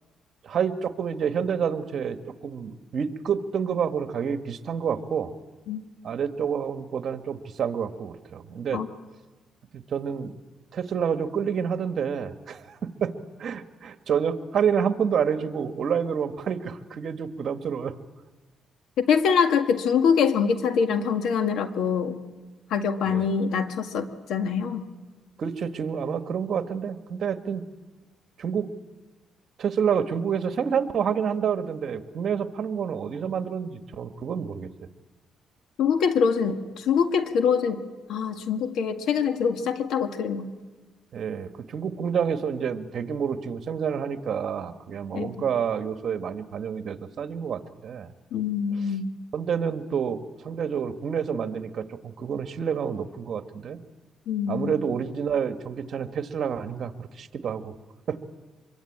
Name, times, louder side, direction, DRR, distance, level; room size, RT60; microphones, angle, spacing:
voice 1, 0.4-2.2 2.4-5.3 6.0-8.8 9.7-10.3 10.7-13.1 13.4-18.0 23.0-23.3 25.4-27.6 28.4-28.7 29.6-34.7 41.1-48.1 49.3-53.8 54.5-57.7 58.1-58.2, right 7 dB, 60° right, 8 dB, 1.6 m, -28 dB
voice 2, 19.0-22.2 22.7-24.8 35.8-37.8 38.1-40.5 45.1-45.4 48.3-49.1 54.3-54.8, left 6 dB, 80° left, 7 dB, 1.9 m, -24 dB
24.5 x 23.0 x 8.7 m, 1.3 s
cardioid pair, 90°, 0 cm